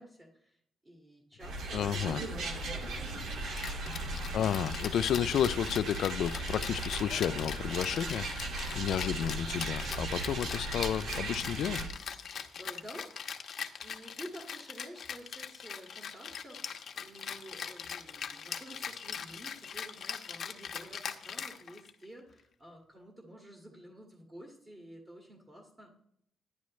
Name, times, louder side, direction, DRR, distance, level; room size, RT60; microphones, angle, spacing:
voice 1, 0.0-3.1 12.3-13.1 13.5-25.9, equal, 20° right, 1.9 m, -51 dB
sound 1, 1.4-11.9, right 2 dB, 70° right, 2.1 m, -37 dB
voice 2, 1.7-2.2 4.3-11.8, left 9 dB, 70° left, 0.3 m, -32 dB
Rattle (instrument), 3.6-22.0, left 7 dB, 55° left, 1.0 m, -41 dB
11.0 x 10.5 x 3.2 m
cardioid pair, 90°, 0 cm